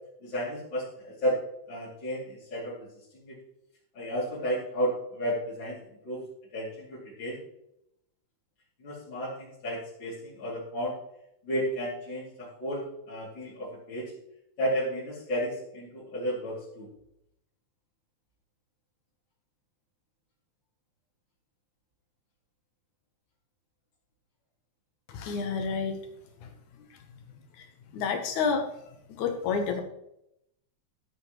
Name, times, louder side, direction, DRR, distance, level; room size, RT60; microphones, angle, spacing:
voice 1, 0.2-1.4 1.7-2.9 3.1-3.4 3.9-5.8 6.0-6.2 6.5-7.4 8.8-11.0 11.4-14.1 14.6-16.9, equal, 40° left, -8 dB, 3.3 m, -32 dB
voice 2, 25.1-26.0 26.4-26.5 27.6-27.7 27.9-28.7 29.1-29.8, left 5 dB, 80° left, 4 dB, 2.4 m, -29 dB
14.0 x 7.9 x 3.1 m, 0.79 s
omnidirectional pair, 3.5 m